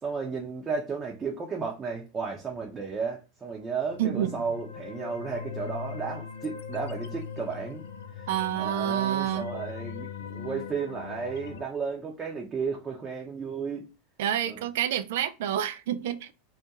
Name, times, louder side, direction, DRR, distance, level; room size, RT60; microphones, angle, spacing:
voice 1, 0.0-7.8 8.2-8.3 8.6-13.9 14.5-14.6, right 5 dB, 25° right, 0.6 m, -33 dB
sound 1, 3.7-11.6, left 7 dB, 80° left, 0.3 m, -40 dB
voice 2, 4.0-4.4 8.3-9.5 14.2-16.3, right 11 dB, 70° right, 0.3 m, -28 dB
2.3 x 2.2 x 2.8 m
hypercardioid pair, 95°, 0 cm